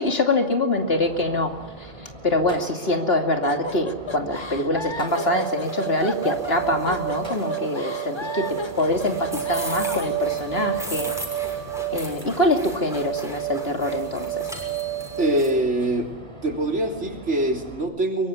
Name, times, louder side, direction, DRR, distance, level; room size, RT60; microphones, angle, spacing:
voice 1, 0.0-1.9 2.2-11.1 11.9-14.5, left 1 dB, 55° left, 4 dB, 2.9 m, -24 dB
Gunshot gunfire, 0.8-17.8, right 1 dB, 25° right, 3.3 m, -41 dB
sound 1, 3.4-10.2, left 3 dB, 25° left, 1.2 m, -34 dB
sound 2, 5.1-15.5, right 10 dB, ahead, 6.3 m, -30 dB
voice 2, 15.2-16.1 16.4-18.3, right 1 dB, 75° right, 3 dB, 3.8 m, -23 dB
23.0 x 23.0 x 9.7 m, 1.1 s
omnidirectional pair, 1.2 m